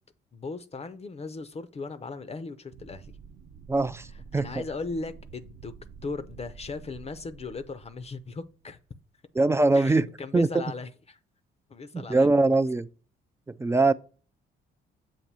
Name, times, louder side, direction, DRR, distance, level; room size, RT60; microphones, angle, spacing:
voice 1, 0.3-3.1 4.3-5.7 6.0-8.8 9.7-11.2 11.7-12.3, left 3 dB, 30° left, 0.6 m, -37 dB
sound 1, 2.7-8.9, right 6 dB, 55° right, 0.7 m, -49 dB
voice 2, 3.7-4.1 4.3-4.5 9.4-10.1 10.3-10.5 11.9-12.9 13.5-13.9, right 2 dB, 15° right, 0.3 m, -22 dB
7.3 x 2.6 x 5.5 m
cardioid pair, 90°, 20 cm